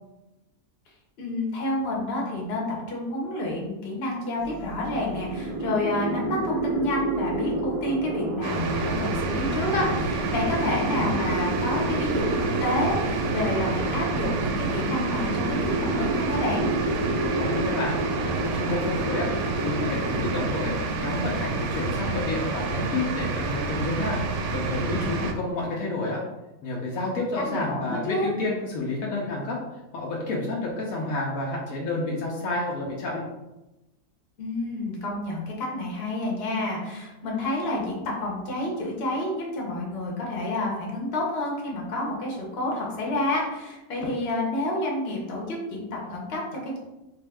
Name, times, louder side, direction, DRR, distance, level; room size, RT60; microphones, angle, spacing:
voice 1, 1.2-16.7 27.5-28.3 34.4-46.8, left 1 dB, 50° left, -2 dB, 1.1 m, -29 dB
sound 1, 4.4-16.9, right 1 dB, 10° right, 0.6 m, -42 dB
sound 2, 4.5-20.5, right 1 dB, 90° right, 1.1 m, -30 dB
sound 3, 8.4-25.3, right 3 dB, 65° right, 0.8 m, -29 dB
voice 2, 17.3-19.3 19.6-24.3 24.5-26.2 26.6-29.6 29.9-33.2, left 2 dB, 75° left, -3 dB, 1.1 m, -29 dB
3.8 x 2.5 x 3.4 m, 0.99 s
omnidirectional pair, 1.5 m